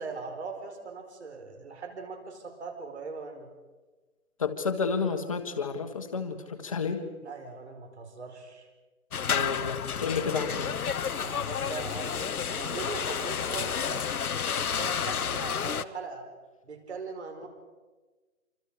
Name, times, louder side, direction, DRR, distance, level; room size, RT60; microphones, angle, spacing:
voice 1, 0.0-3.5 7.2-8.7 11.1-14.1 14.6-16.3 16.6-17.5, right 4 dB, 50° right, 5 dB, 4.9 m, -40 dB
voice 2, 4.4-7.0 9.3-10.7, left 5 dB, 25° left, 6 dB, 1.4 m, -31 dB
sound 1, 9.1-15.8, left 7 dB, 85° left, 1.1 m, -31 dB
27.0 x 25.5 x 5.0 m, 1.3 s
hypercardioid pair, 175°, 43 cm